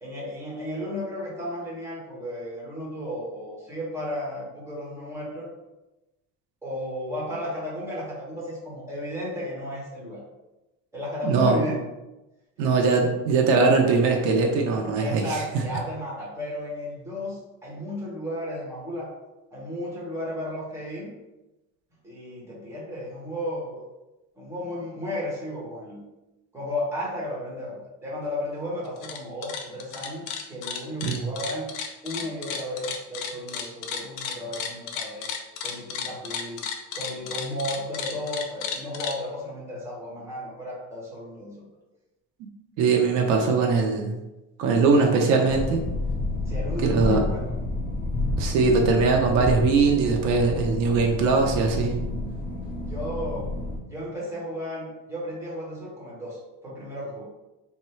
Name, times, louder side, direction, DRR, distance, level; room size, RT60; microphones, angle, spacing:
voice 1, 0.0-5.5 6.6-10.2 10.9-11.8 13.0-13.1 15.0-19.1 19.5-21.1 22.0-23.8 24.4-26.0 26.5-31.7 32.0-35.3 35.6-36.6 36.9-41.7 46.4-47.5 52.8-53.5 53.8-57.2, left 1 dB, 10° right, -6 dB, 1.2 m, -34 dB
voice 2, 11.2-11.6 12.6-15.4 31.0-31.2 42.8-44.1 44.6-45.8 46.8-47.2 48.4-51.9, right 4 dB, 90° right, 2 dB, 0.8 m, -21 dB
sound 1, 28.9-29.2 29.4-39.2, left 7 dB, 70° left, 0.6 m, -33 dB
sound 2, 45.5-53.8, left 2 dB, 30° left, 0.8 m, -29 dB
3.6 x 2.2 x 4.3 m, 0.99 s
cardioid pair, 155°, 32 cm